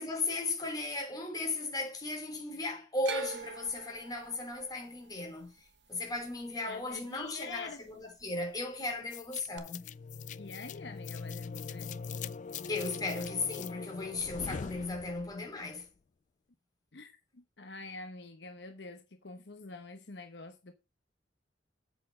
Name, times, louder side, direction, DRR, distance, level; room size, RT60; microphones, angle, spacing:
voice 1, 0.0-5.5 5.9-9.8 12.7-15.9, left 2 dB, 20° left, 3.6 m, -36 dB
sound 1, 3.0-7.2 7.5-8.2 9.6-9.7, right 5 dB, 65° right, 1.1 m, -44 dB
voice 2, 6.7-7.8 10.4-11.9 16.9-20.7, left 3 dB, 65° left, 1.0 m, -46 dB
sound 2, 9.1-15.5, left 5 dB, 40° left, 0.3 m, -42 dB
7.9 x 6.1 x 5.4 m
head